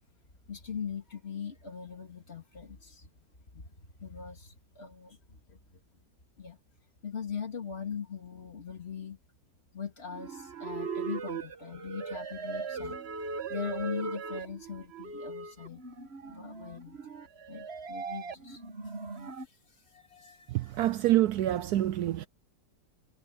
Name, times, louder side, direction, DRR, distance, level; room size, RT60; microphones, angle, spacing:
voice 1, 0.5-3.1 3.5-5.6 6.4-6.6 7.0-9.2 9.7-15.8 16.3-17.0 17.5-18.6 19.9-21.0, left 6 dB, 35° left, 2.4 m, -41 dB
sound 1, 10.1-19.5, right 5 dB, 40° right, 1.5 m, -39 dB
voice 2, 20.5-22.3, right 13 dB, 70° right, 0.9 m, -26 dB
omnidirectional pair, 2.0 m